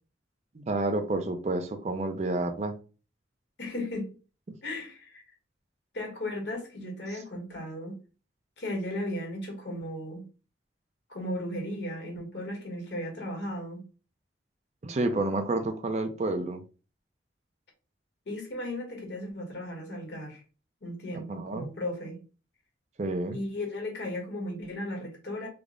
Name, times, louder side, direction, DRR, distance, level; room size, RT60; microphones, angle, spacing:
voice 1, 0.5-2.8 14.8-16.6 21.1-21.7 23.0-23.4, right 2 dB, 35° right, 7 dB, 0.4 m, -30 dB
voice 2, 3.6-4.1 4.6-5.2 5.9-7.9 8.6-10.2 11.1-13.8 18.3-20.4 20.8-22.2 23.3-25.5, left 1 dB, 65° left, 2 dB, 1.1 m, -35 dB
3.4 x 2.0 x 3.6 m, 0.35 s
head